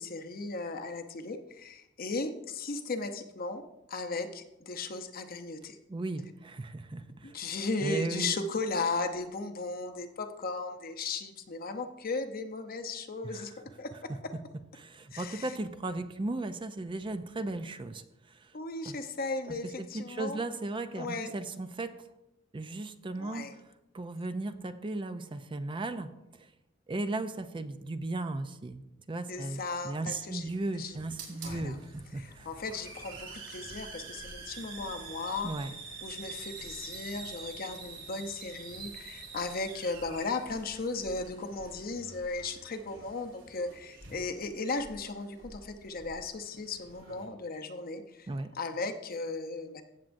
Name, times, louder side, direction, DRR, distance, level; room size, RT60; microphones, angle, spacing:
voice 1, 0.0-3.6 3.9-5.8 7.2-13.5 13.8-14.3 15.1-15.5 18.5-20.4 20.9-21.3 23.2-23.6 29.3-31.0 31.3-31.8 32.1-35.5 36.0-48.3 48.5-49.8, left 3 dB, 50° left, 7 dB, 0.8 m, -36 dB
voice 2, 5.9-7.4 7.8-8.4 13.3-13.5 14.8-18.0 18.3-18.5 18.9-19.0 19.5-21.9 22.5-23.4 23.9-26.1 26.9-28.8 29.1-32.5 35.4-35.7 48.3-48.5, right 2 dB, 25° right, 9 dB, 0.5 m, -36 dB
Hiss, 29.3-47.2, right 4 dB, 75° right, 3.3 m, -47 dB
15.0 x 7.4 x 2.6 m, 0.90 s
head